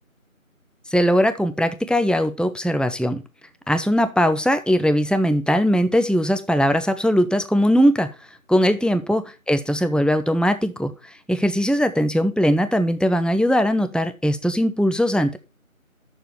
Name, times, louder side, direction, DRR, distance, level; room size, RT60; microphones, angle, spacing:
voice 1, 0.9-3.2 3.7-8.1 8.5-15.4, equal, ahead, 10 dB, 0.4 m, -20 dB
7.8 x 6.7 x 4.3 m, 0.29 s
figure-of-eight pair, 180°, 42 cm